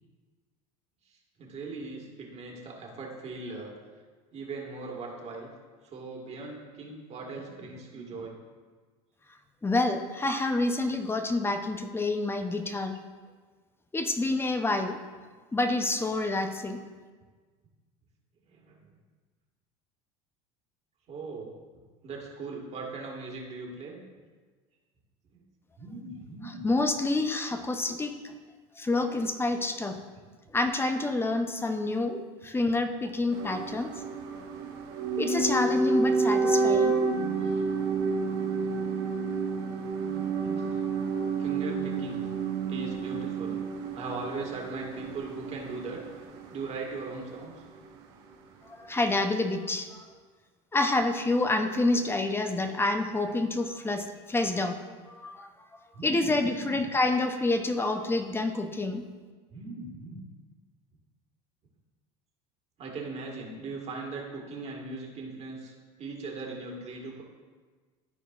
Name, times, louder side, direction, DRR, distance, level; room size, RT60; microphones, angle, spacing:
voice 1, 1.1-3.8 4.3-5.5 5.8-8.4 18.5-18.8 21.1-21.5 22.0-24.0 25.3-25.4 25.8-26.6 37.4-37.7 40.0-40.9 41.4-42.2 42.7-43.6 43.9-46.0 46.5-47.6 55.9-56.8 59.5-60.2 62.8-67.2, right 3 dB, 40° right, -1 dB, 1.8 m, -39 dB
voice 2, 9.6-13.0 13.9-15.0 15.5-16.8 26.6-28.3 28.8-30.0 30.5-33.9 35.0-37.0 48.6-50.0 50.7-54.8 55.1-55.5 56.0-59.0, left 2 dB, 15° left, 7 dB, 0.7 m, -28 dB
sound 1, 33.3-47.4 47.6-47.7, right 4 dB, 70° right, 1.0 m, -30 dB
13.5 x 4.6 x 2.5 m, 1.5 s
supercardioid pair, 100°, 17 cm